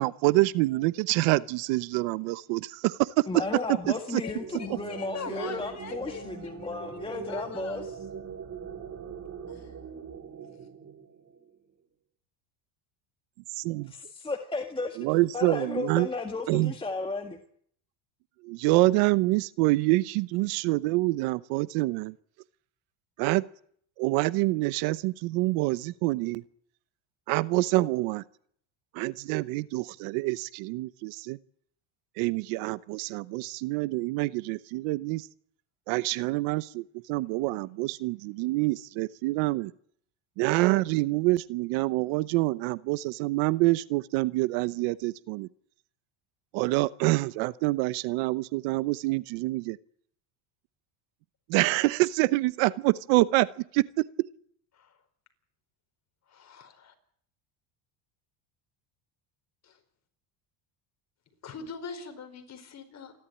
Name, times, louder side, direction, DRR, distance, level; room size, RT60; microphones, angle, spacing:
voice 1, 0.0-3.3 4.1-4.2 13.6-13.9 15.0-16.1 16.5-16.7 18.4-22.1 23.2-23.4 24.0-26.4 27.3-28.2 28.9-31.4 32.2-35.3 35.9-36.8 37.1-39.7 40.4-45.5 46.5-49.8 51.5-53.5 53.7-54.0, right 20 dB, 75° right, 17 dB, 1.0 m, -26 dB
voice 2, 3.3-7.9 13.9-15.0 15.3-17.4, left 3 dB, 10° left, 3 dB, 1.8 m, -34 dB
sound 1, 4.1-11.6, right 7 dB, 35° right, 3.6 m, -41 dB
voice 3, 4.2-7.8 9.5-9.7 54.7-55.0 56.3-56.9 59.6-59.8 61.4-63.1, left 6 dB, 30° left, 6 dB, 4.9 m, -43 dB
28.0 x 12.5 x 9.9 m, 0.64 s
cardioid pair, 140°, 49 cm